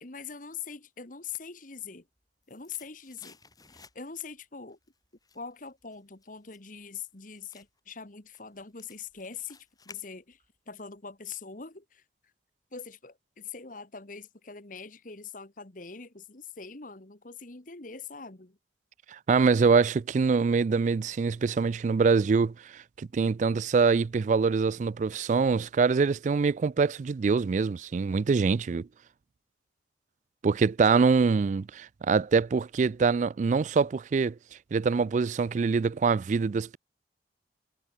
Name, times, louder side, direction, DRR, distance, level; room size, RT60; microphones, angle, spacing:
voice 1, 0.0-2.1 2.5-3.4 3.7-4.8 5.4-10.4 10.7-12.0 12.7-18.6, left 6 dB, 45° left, 1.7 m, -43 dB
sound 1, 1.9-4.3 4.7-10.6 10.9-11.0, left 4 dB, 20° left, 7.8 m, -57 dB
voice 2, 19.1-28.9 30.4-34.4 34.7-36.8, right 5 dB, 40° right, 0.3 m, -24 dB
head